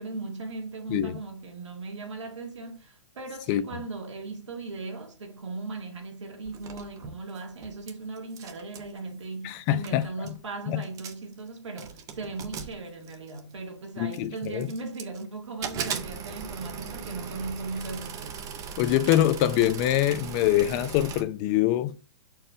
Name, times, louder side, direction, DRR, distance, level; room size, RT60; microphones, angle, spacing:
voice 1, 0.0-18.5, right 3 dB, 90° right, 1.8 m, -38 dB
sound 1, 6.4-7.9 8.2-8.9 9.6-9.7 9.8-10.4 10.8-11.3 11.8-13.5 14.1-15.2 15.6-21.2, right 7 dB, 20° right, 0.7 m, -38 dB
voice 2, 9.4-10.0 10.7-10.8 14.0-14.7 18.8-22.1, left 13 dB, 35° left, 0.5 m, -24 dB
6.4 x 4.6 x 4.4 m
hypercardioid pair, 140°, 15 cm